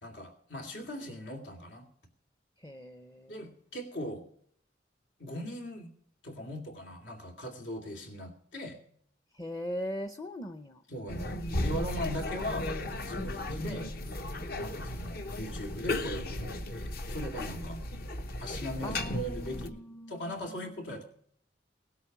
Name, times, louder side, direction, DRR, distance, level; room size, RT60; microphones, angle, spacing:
voice 1, 0.0-1.9 3.3-4.2 5.2-5.9 6.2-8.8 10.9-12.7 13.0-13.9 14.6-17.8 18.4-21.0, equal, 80° left, 3 dB, 2.5 m, -40 dB
voice 2, 2.6-3.4 9.3-10.8 13.1-13.4 14.4-14.6 18.8-20.8, equal, 20° left, 9 dB, 0.6 m, -40 dB
sound 1, 11.1-19.7, left 1 dB, 55° left, 1.0 m, -35 dB
18.5 x 8.4 x 6.0 m, 0.64 s
head